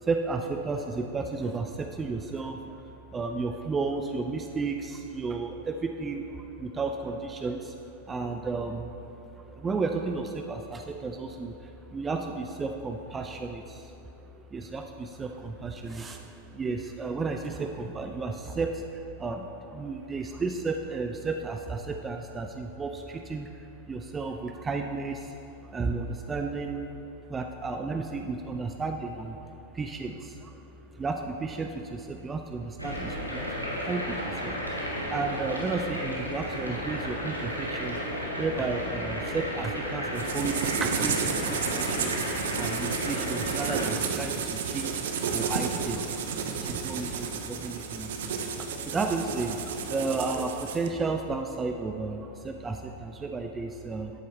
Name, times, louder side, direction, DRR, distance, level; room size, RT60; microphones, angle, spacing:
voice 1, 0.0-2.8 3.1-7.8 8.1-9.0 9.4-13.9 14.3-23.5 23.9-27.0 27.3-29.4 29.7-30.6 30.9-33.5 33.7-38.0 38.4-42.1 42.5-45.0 45.3-54.1, right 4 dB, 15° right, 4 dB, 0.4 m, -33 dB
sound 1, 32.8-43.9, equal, 90° left, 1.3 m, -33 dB
sound 2, 40.2-50.9, right 6 dB, 60° right, 0.7 m, -32 dB
11.5 x 8.4 x 3.0 m, 2.8 s
figure-of-eight pair, 90°, 0 cm